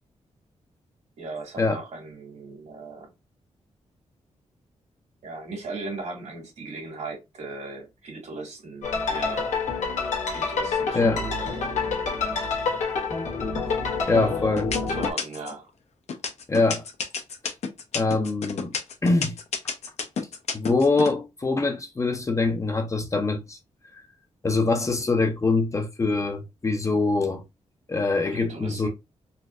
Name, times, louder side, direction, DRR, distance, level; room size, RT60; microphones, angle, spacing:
voice 1, 1.2-3.1 5.2-9.6 10.3-11.9 14.1-14.3 14.9-15.7 28.3-28.9, right 3 dB, 75° right, 1.9 m, -38 dB
sound 1, 8.8-15.1, left 4 dB, 85° left, 1.2 m, -27 dB
sound 2, 13.6-14.1 14.6-15.6 16.1-21.1, left 5 dB, 65° left, 0.7 m, -30 dB
voice 2, 14.1-14.7 16.5-16.8 17.9-18.7 19.0-19.3 20.5-23.6 24.4-27.4 27.9-28.9, left 3 dB, 25° left, 0.5 m, -24 dB
4.0 x 2.6 x 2.4 m
wide cardioid pair, 145°, 12 cm